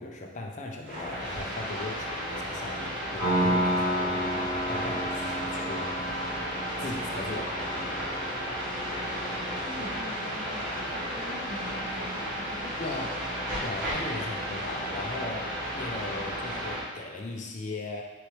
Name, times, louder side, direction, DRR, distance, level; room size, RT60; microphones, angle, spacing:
voice 1, 0.0-6.0 6.8-7.5 12.8-13.1 13.6-15.5 15.7-18.0, left 2 dB, 40° left, 1 dB, 0.5 m, -38 dB
sound 1, 0.8-16.8, equal, 60° right, 1.5 m, -33 dB
Piano, 3.2-9.9, equal, 70° left, 1.3 m, -32 dB
voice 2, 9.3-13.0 14.1-14.3, left 1 dB, 40° right, -10 dB, 0.9 m, -43 dB
4.0 x 3.1 x 3.1 m, 1.3 s
head